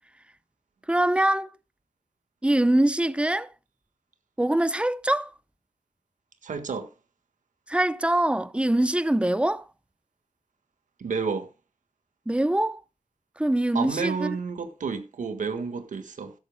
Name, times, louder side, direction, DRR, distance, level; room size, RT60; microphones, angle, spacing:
voice 1, 0.9-1.5 2.4-3.5 4.4-5.3 7.7-9.6 12.3-12.8 13.4-14.4, right 1 dB, 10° right, 0.6 m, -23 dB
voice 2, 6.4-6.9 11.0-11.5 13.7-16.3, right 5 dB, 85° right, 1.6 m, -30 dB
15.5 x 12.5 x 2.2 m
wide cardioid pair, 100°, 13 cm